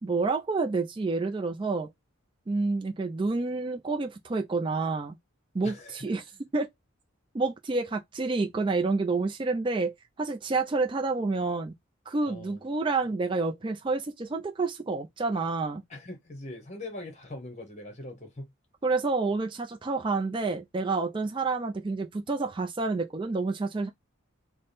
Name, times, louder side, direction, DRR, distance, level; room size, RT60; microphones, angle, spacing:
voice 1, 0.0-1.9 2.5-5.2 5.5-6.2 6.5-6.7 7.3-11.7 12.1-15.8 18.8-23.9, right 3 dB, 25° right, 0.3 m, -29 dB
voice 2, 5.6-6.0 12.3-12.6 15.9-18.5, left 2 dB, 35° left, 0.9 m, -41 dB
3.4 x 2.1 x 4.0 m
head